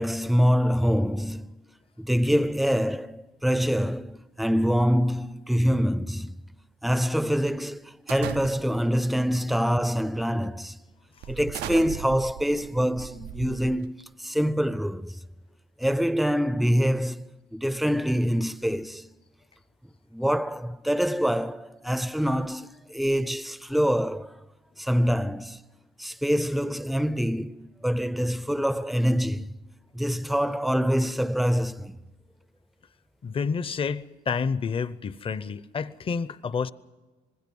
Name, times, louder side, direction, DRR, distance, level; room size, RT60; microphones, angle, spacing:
voice 1, 0.0-1.5 2.0-6.4 6.8-10.7 11.3-15.2 15.8-17.2 17.5-19.1 20.1-24.3 24.8-25.6 26.0-29.5 29.9-32.0, equal, ahead, 0.6 m, -25 dB
sound 1, 8.1-8.9 9.7-10.0 10.4-10.6 11.2-14.1, right 13 dB, 75° right, 0.6 m, -38 dB
voice 2, 33.2-36.7, left 5 dB, 30° left, 0.8 m, -29 dB
26.5 x 20.5 x 5.4 m
cardioid pair, 110°, 17 cm